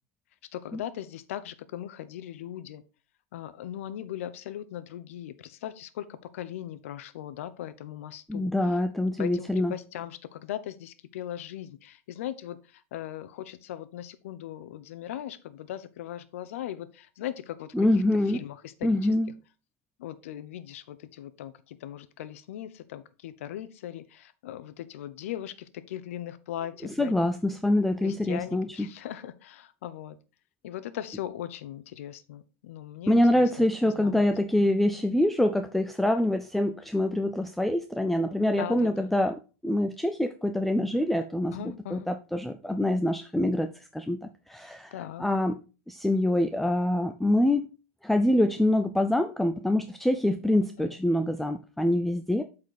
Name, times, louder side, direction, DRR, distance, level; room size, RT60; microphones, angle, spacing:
voice 1, 0.5-2.8 3.3-8.8 9.2-17.9 18.3-19.0 20.0-27.1 28.0-30.2 30.6-33.7 33.9-34.3 34.6-34.8 38.6-39.1 41.5-42.1 44.9-45.2 50.5-50.9, left 11 dB, 75° left, 14 dB, 0.8 m, -39 dB
voice 2, 8.3-9.7 17.7-18.4 18.8-19.3 27.0-28.9 33.1-44.2 44.5-44.9 45.2-45.6 45.9-47.7 48.0-52.4, left 1 dB, ahead, 7 dB, 0.4 m, -25 dB
8.0 x 4.3 x 4.1 m, 0.32 s
supercardioid pair, 135°, 7 cm